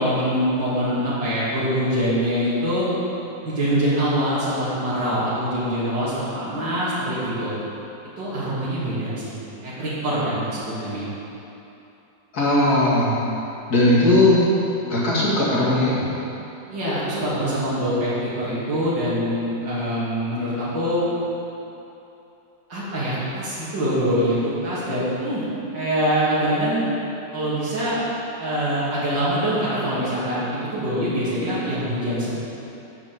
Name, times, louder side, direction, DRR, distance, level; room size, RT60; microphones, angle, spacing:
voice 1, 0.0-2.9 3.4-7.5 8.2-9.4 9.6-11.1 16.7-21.1 22.7-25.4 25.7-26.9 27.3-28.0 28.4-32.4, equal, 80° right, -11 dB, 3.2 m, -24 dB
voice 2, 12.3-13.1 13.7-14.4 14.9-16.1, left 1 dB, 60° left, -7 dB, 2.6 m, -18 dB
10.0 x 5.2 x 7.7 m, 2.9 s
omnidirectional pair, 1.9 m